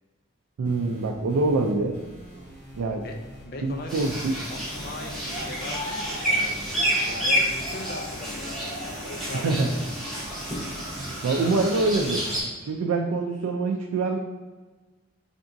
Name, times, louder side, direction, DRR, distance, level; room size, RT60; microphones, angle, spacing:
sound 1, 0.6-7.5, equal, 35° right, 1.0 m, -46 dB
voice 1, 0.6-2.0 2.7-3.1 3.6-4.4 9.4-9.7 11.0-12.3 12.7-14.2, right 3 dB, 85° right, 1 dB, 0.4 m, -25 dB
voice 2, 3.4-4.1 4.5-9.8, left 2 dB, 45° left, 4 dB, 0.4 m, -40 dB
sound 2, 3.9-12.4, equal, ahead, 0.9 m, -29 dB
3.9 x 3.4 x 2.5 m, 1.3 s
head